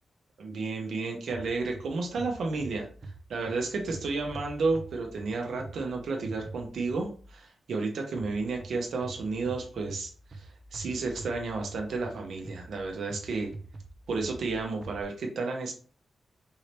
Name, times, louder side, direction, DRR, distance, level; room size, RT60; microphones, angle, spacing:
voice 1, 0.4-2.9 3.3-13.5 14.1-15.7, right 3 dB, 80° right, 2 dB, 1.0 m, -32 dB
sound 1, 1.3-7.4 8.2-15.0, right 2 dB, 35° right, 0.6 m, -45 dB
4.7 x 2.8 x 3.4 m, 0.41 s
wide cardioid pair, 130°, 0 cm